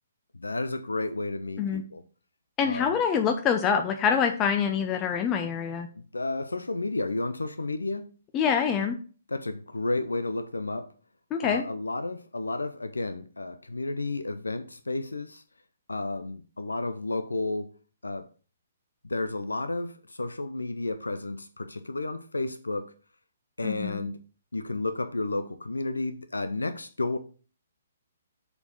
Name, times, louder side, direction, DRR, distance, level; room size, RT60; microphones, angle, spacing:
voice 1, 0.3-2.0 2.6-3.0 5.9-8.1 9.3-10.9 11.4-15.4 15.9-17.7 18.0-18.3 19.0-22.9 23.6-24.2 24.5-27.2, left 2 dB, 90° left, 0.6 m, -32 dB
voice 2, 2.6-5.9 8.3-9.0 11.3-11.6 23.6-24.0, left 7 dB, 25° left, 0.7 m, -25 dB
6.9 x 4.5 x 5.0 m
figure-of-eight pair, 135°, 0 cm